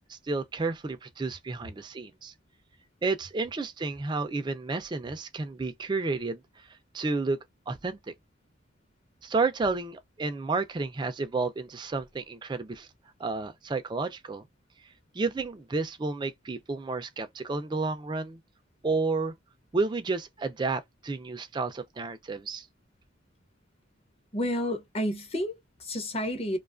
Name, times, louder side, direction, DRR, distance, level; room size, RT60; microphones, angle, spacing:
voice 1, 0.1-2.3 3.0-6.7 6.9-7.4 7.7-8.1 9.2-12.9 13.2-14.4 15.1-18.4 18.8-19.3 19.7-22.7, right 3 dB, 20° right, 0.3 m, -31 dB
voice 2, 24.3-26.6, equal, 30° left, 0.7 m, -30 dB
2.4 x 2.3 x 2.4 m
head